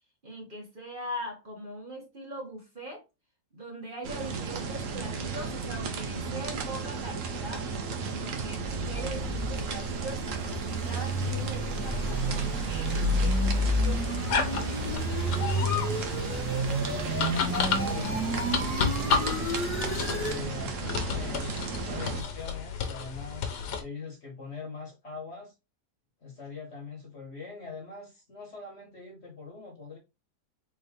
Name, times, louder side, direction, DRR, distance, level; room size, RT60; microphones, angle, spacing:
voice 1, 0.2-3.0 3.5-7.7 8.1-15.3, right 1 dB, 35° right, 1.3 m, -41 dB
sound 1, 4.0-22.2, right 5 dB, 60° right, 1.0 m, -34 dB
sound 2, 8.2-20.4, equal, 10° left, 1.0 m, -31 dB
sound 3, 11.8-23.8, left 6 dB, 85° left, 1.5 m, -33 dB
voice 2, 16.8-19.2 20.1-25.5 26.2-30.0, left 4 dB, 45° left, 1.4 m, -42 dB
4.1 x 3.6 x 3.5 m
omnidirectional pair, 1.7 m